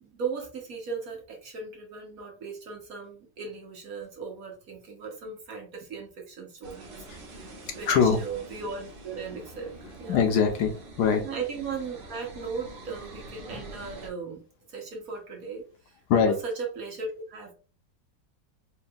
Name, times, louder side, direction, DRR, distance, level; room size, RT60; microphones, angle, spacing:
voice 1, 0.0-9.7 10.0-10.2 11.2-14.4 14.7-16.0 16.3-17.5, right 5 dB, 55° right, 1 dB, 1.3 m, -37 dB
sound 1, 6.6-14.1, right 1 dB, 75° right, 1.8 m, -45 dB
voice 2, 7.9-8.2 10.1-11.2 16.1-16.4, left 6 dB, 75° left, 6 dB, 1.2 m, -22 dB
4.4 x 3.1 x 2.3 m, 0.37 s
omnidirectional pair, 1.9 m